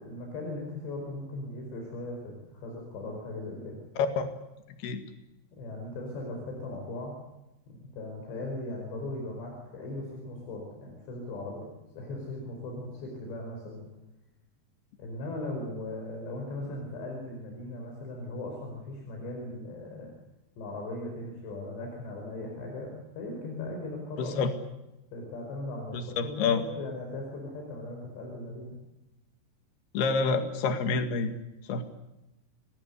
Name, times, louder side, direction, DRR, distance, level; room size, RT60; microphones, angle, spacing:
voice 1, 0.0-3.8 5.5-7.1 7.7-13.9 15.0-20.1 20.6-24.5 25.1-28.7, left 2 dB, 85° left, 1 dB, 7.2 m, -38 dB
voice 2, 4.0-4.3 4.8-5.0 24.2-24.5 25.9-26.6 29.9-31.3 31.7-31.8, left 4 dB, 65° left, 7 dB, 3.9 m, -27 dB
29.0 x 20.5 x 8.3 m, 0.94 s
omnidirectional pair, 4.9 m